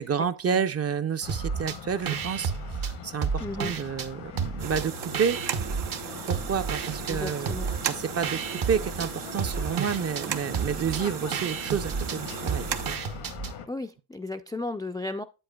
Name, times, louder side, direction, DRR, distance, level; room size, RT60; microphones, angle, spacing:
voice 1, 0.0-2.5 2.8-4.9 5.2-5.4 6.3-7.5 7.9-8.4 8.7-12.7, right 7 dB, 40° right, 0.6 m, -29 dB
sound 1, 1.2-13.7, left 8 dB, 90° left, 1.1 m, -42 dB
sound 2, 1.3-1.8 2.1-4.1 4.4-6.0 6.3-13.5, right 6 dB, 60° right, 1.0 m, -32 dB
voice 2, 3.4-3.7 7.1-7.7 13.7-15.2, left 2 dB, 10° left, 0.3 m, -34 dB
sound 3, 4.6-13.0, right 9 dB, 85° right, 0.9 m, -36 dB
8.4 x 7.8 x 2.2 m
cardioid pair, 95°, 40 cm